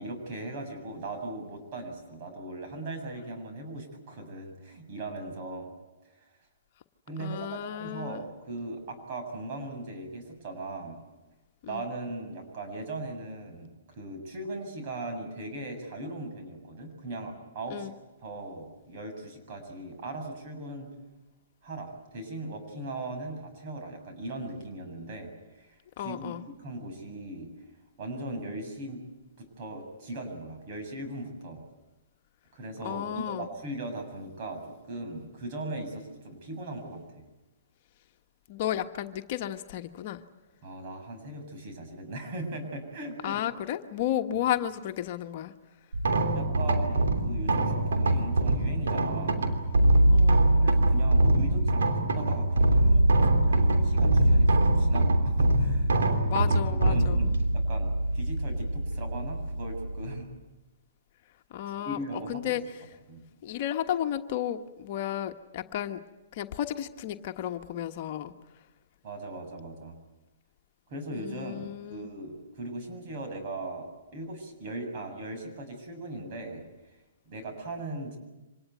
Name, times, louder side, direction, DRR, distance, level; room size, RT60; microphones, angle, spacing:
voice 1, 0.0-5.7 7.1-11.0 11.7-17.9 18.2-20.9 21.6-26.3 26.6-27.5 28.0-29.0 29.4-31.6 32.5-34.6 34.9-37.0 40.6-43.4 44.3-44.4 46.3-49.5 50.6-55.9 56.3-60.3 61.8-62.6 63.1-63.2 69.0-70.0 70.9-76.6 77.3-78.2, right 2 dB, 45° right, 4 dB, 7.1 m, -39 dB
voice 2, 7.2-8.2 11.6-11.8 17.7-17.9 26.0-26.4 32.8-33.5 38.5-40.2 43.2-45.5 50.1-50.4 56.2-57.3 61.5-62.6 63.4-66.0 66.3-68.3 71.1-72.1, left 11 dB, 45° left, 6 dB, 1.3 m, -33 dB
sound 1, 45.9-60.2, right 1 dB, 80° right, 3.2 m, -23 dB
25.5 x 19.0 x 9.3 m, 1.0 s
hypercardioid pair, 135°, 0 cm